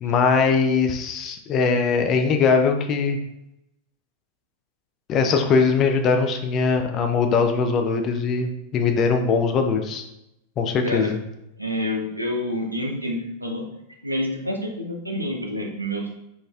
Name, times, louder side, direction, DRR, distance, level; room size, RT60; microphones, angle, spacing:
voice 1, 0.0-3.2 5.1-10.0 10.6-11.2, left 5 dB, 30° left, 5 dB, 0.3 m, -21 dB
voice 2, 11.6-13.6 14.0-16.2, left 1 dB, 85° right, 2 dB, 0.5 m, -28 dB
3.8 x 2.5 x 2.3 m, 0.86 s
figure-of-eight pair, 90°, 0 cm